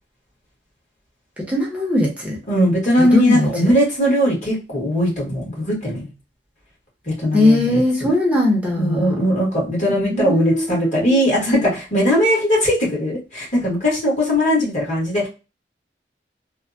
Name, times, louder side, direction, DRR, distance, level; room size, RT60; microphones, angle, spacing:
voice 1, 1.5-2.4 3.0-3.7 7.3-9.1 10.1-11.2, left 1 dB, 10° right, -2 dB, 0.7 m, -19 dB
voice 2, 2.5-6.1 7.1-8.1 8.8-15.3, equal, 45° left, -4 dB, 1.6 m, -19 dB
3.3 x 2.1 x 2.5 m, 0.31 s
head